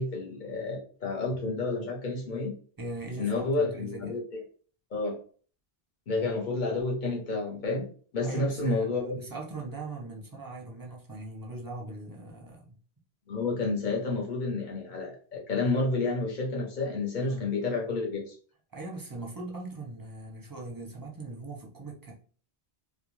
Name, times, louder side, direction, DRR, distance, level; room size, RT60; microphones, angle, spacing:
voice 1, 0.0-2.5 3.2-4.2 4.9-5.2 6.1-7.9 8.1-9.2 13.3-18.3, left 3 dB, 50° left, 1.0 m, -30 dB
voice 2, 2.8-4.2 8.2-12.8 17.2-17.5 18.7-22.1, right 2 dB, 25° right, 0.6 m, -40 dB
2.4 x 2.2 x 3.0 m
omnidirectional pair, 1.0 m